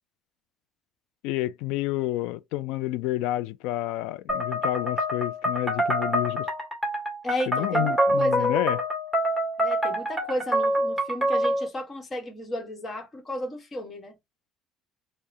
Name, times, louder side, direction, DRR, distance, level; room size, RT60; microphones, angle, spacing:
voice 1, 1.2-6.5 7.5-8.8, left 16 dB, 85° left, 0.3 m, -29 dB
sound 1, 4.3-11.7, equal, ahead, 1.8 m, -26 dB
voice 2, 7.2-8.5 9.6-14.1, left 1 dB, 25° left, 1.2 m, -33 dB
4.7 x 2.1 x 2.6 m
cardioid pair, 120°, 0 cm